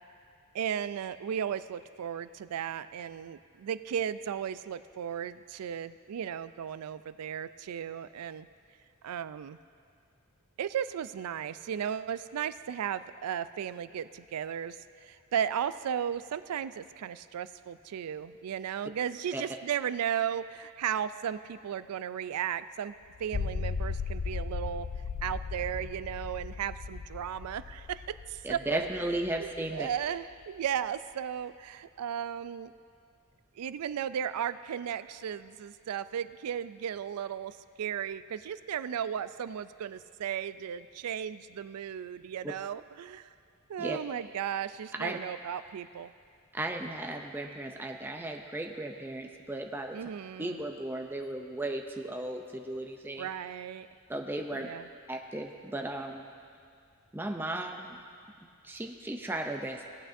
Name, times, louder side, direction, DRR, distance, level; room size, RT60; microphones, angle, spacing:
voice 1, 0.5-8.5 9.0-9.6 10.6-22.9 23.2-24.9 25.2-28.9 29.4-32.7 33.6-43.3 43.7-46.1 49.9-50.6 53.2-53.9 54.5-54.9, right 9 dB, 90° right, 14 dB, 0.4 m, -35 dB
sound 1, 23.2-29.7, left 5 dB, 80° left, 0.5 m, -37 dB
voice 2, 28.4-29.9 42.4-42.5 43.8-44.0 45.0-45.2 46.5-50.0 50.4-53.3 54.1-54.7 55.1-56.3 57.1-58.0 58.6-59.8, right 1 dB, 10° right, 3 dB, 0.4 m, -35 dB
18.0 x 8.9 x 2.6 m, 2.2 s
head